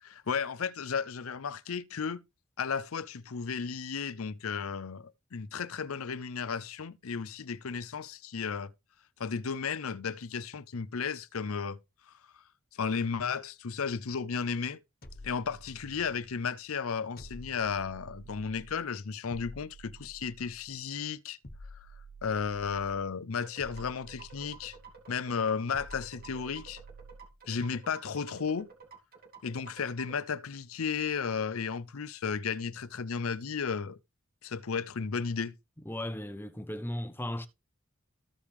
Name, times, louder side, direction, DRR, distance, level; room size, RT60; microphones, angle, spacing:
voice 1, 0.0-2.2 2.6-8.7 9.2-11.8 12.8-14.8 15.2-21.4 22.2-24.8 25.1-26.8 27.5-28.7 29.4-34.0 34.4-35.6, left 6 dB, 85° left, 0.6 m, -34 dB
sound 1, 15.0-16.3 17.2-18.8 19.3-20.7 21.4-23.1 23.6-25.0 25.7-27.3, right 1 dB, 45° left, 1.3 m, -49 dB
sound 2, 23.3-30.2, right 5 dB, 45° right, 2.7 m, -52 dB
voice 2, 35.8-37.5, left 1 dB, 10° left, 0.8 m, -36 dB
14.5 x 4.9 x 3.4 m
head